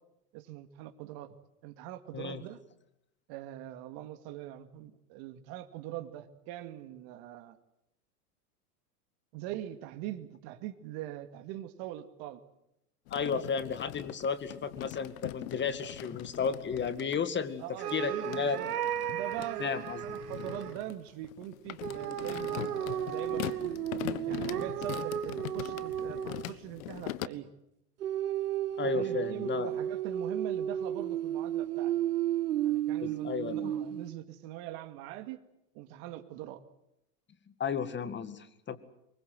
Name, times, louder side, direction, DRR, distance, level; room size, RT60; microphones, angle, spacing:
voice 1, 0.3-1.4 1.6-2.6 3.3-7.6 9.3-12.4 13.2-13.4 17.6-18.7 19.1-23.8 24.3-27.5 28.9-31.9 32.6-35.4 35.7-36.6, right 13 dB, 50° right, 9 dB, 2.3 m, -42 dB
sound 1, 13.1-17.2 17.9-27.3, left 15 dB, 60° left, 1.4 m, -41 dB
voice 2, 13.1-17.6 17.9-18.6 19.6-20.0 28.8-29.7 33.0-33.7 37.6-38.8, left 6 dB, 25° left, 13 dB, 2.1 m, -33 dB
sound 2, 17.8-20.8 21.8-26.6 28.0-34.1, right 11 dB, 80° right, 1.5 m, -33 dB
24.0 x 22.0 x 7.9 m, 0.83 s
hypercardioid pair, 105°, 45 cm